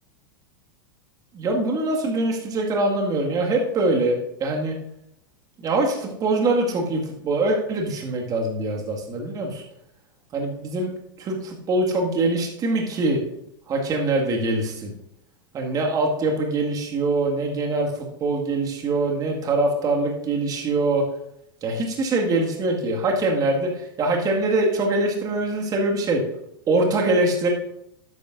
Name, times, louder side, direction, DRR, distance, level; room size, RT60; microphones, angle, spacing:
voice 1, 1.3-4.8 5.6-9.6 10.3-10.9 11.2-13.2 13.7-14.9 15.5-21.0 21.6-26.2 26.7-27.5, right 2 dB, 30° right, 0 dB, 2.0 m, -23 dB
12.0 x 9.5 x 2.6 m, 0.78 s
hypercardioid pair, 95°, 11 cm